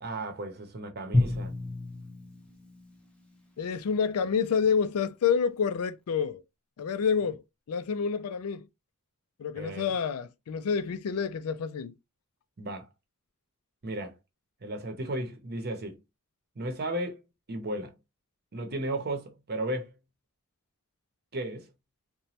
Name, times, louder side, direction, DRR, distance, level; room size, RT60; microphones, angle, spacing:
voice 1, 0.0-1.5 9.5-9.9 12.6-12.9 13.8-14.1 14.6-16.0 16.6-17.2 17.5-17.9 18.5-19.9 21.3-21.7, right 1 dB, 50° right, 0.8 m, -34 dB
Drum, 1.1-4.1, left 2 dB, 5° left, 0.6 m, -32 dB
voice 2, 3.6-6.4 6.8-7.4 7.7-8.7 9.4-12.0, left 6 dB, 90° left, 0.4 m, -28 dB
3.0 x 2.2 x 2.7 m
head